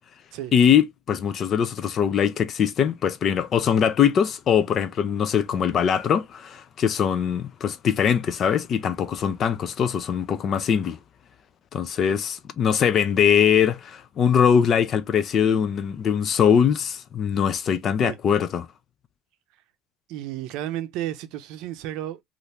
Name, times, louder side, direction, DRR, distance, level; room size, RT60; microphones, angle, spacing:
voice 1, 0.5-11.0 11.7-18.7, left 8 dB, 35° left, 0.4 m, -22 dB
voice 2, 20.1-22.2, right 13 dB, 65° right, 0.6 m, -32 dB
3.2 x 2.5 x 2.8 m
cardioid pair, 140°, 0 cm